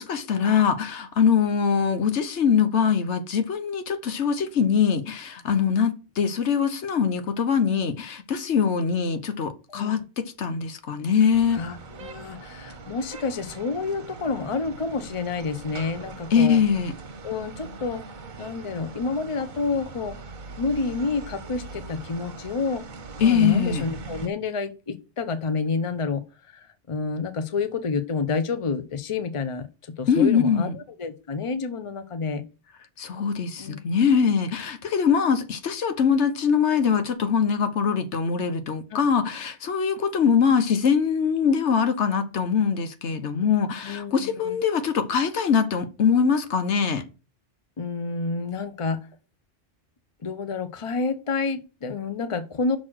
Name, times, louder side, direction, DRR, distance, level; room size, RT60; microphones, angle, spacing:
voice 1, 0.0-11.6 16.3-16.9 23.2-23.8 30.1-30.7 33.0-47.0, left 6 dB, 80° left, 1.2 m, -22 dB
sound 1, 11.3-24.3, right 4 dB, 45° right, 0.9 m, -41 dB
voice 2, 11.5-16.6 17.2-18.0 18.4-20.3 20.6-22.8 23.2-32.4 33.6-33.8 38.9-39.0 43.8-44.6 47.8-49.0 50.2-52.8, left 4 dB, 30° left, 0.7 m, -29 dB
6.2 x 4.2 x 6.1 m
omnidirectional pair, 1.2 m